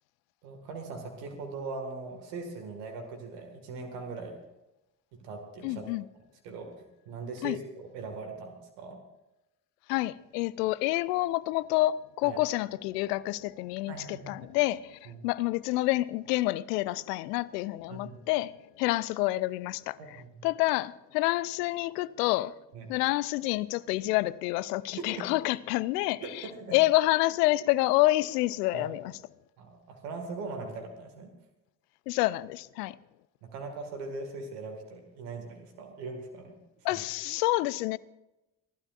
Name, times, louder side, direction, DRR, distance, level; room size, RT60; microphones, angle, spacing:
voice 1, 0.4-4.4 5.2-5.9 6.4-6.7 7.1-9.0 12.2-12.4 13.9-14.5 15.1-15.2 17.9-18.2 20.0-20.5 22.7-22.9 25.0-25.2 26.2-26.7 28.7-28.9 29.6-31.3 33.4-36.6 36.9-37.0, right 3 dB, 80° right, 2.0 m, -40 dB
voice 2, 5.6-6.0 7.4-7.6 9.9-20.2 20.4-22.5 22.9-29.0 32.1-33.0 36.8-38.0, left 18 dB, 80° left, 0.6 m, -28 dB
29.5 x 12.5 x 2.5 m
hypercardioid pair, 45°, 47 cm